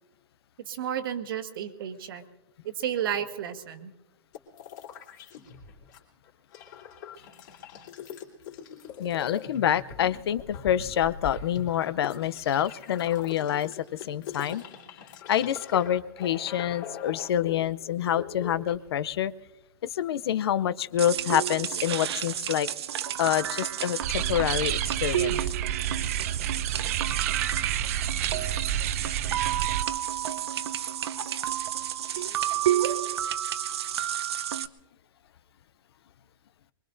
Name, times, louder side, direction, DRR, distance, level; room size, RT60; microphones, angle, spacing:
voice 1, 0.7-2.2 2.6-3.9 32.8-33.0, right 9 dB, 55° right, 8 dB, 1.4 m, -32 dB
sound 1, 4.3-6.0 6.3-18.8, left 8 dB, 45° left, 3.0 m, -42 dB
voice 2, 9.0-14.6 15.3-19.3 19.8-22.7 23.2-25.4 32.2-32.3, left 10 dB, 70° left, 16 dB, 0.6 m, -27 dB
sound 2, 21.0-34.7, right 11 dB, 80° right, 0.7 m, -31 dB
sound 3, 24.0-29.8, right 11 dB, 35° right, 0.5 m, -29 dB
24.0 x 22.0 x 2.6 m, 1.0 s
hypercardioid pair, 165°, 14 cm